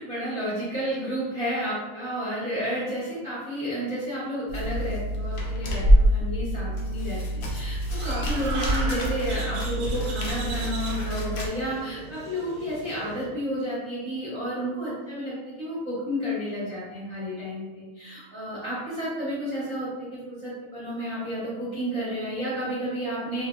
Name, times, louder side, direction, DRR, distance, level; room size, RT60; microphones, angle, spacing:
voice 1, 0.0-23.5, equal, 25° right, -10 dB, 0.7 m, -31 dB
sound 1, 4.5-11.5, equal, 70° left, 0.5 m, -25 dB
sound 2, 7.9-13.3, right 3 dB, 85° right, 1.1 m, -37 dB
3.0 x 2.7 x 2.2 m, 1.1 s
omnidirectional pair, 1.5 m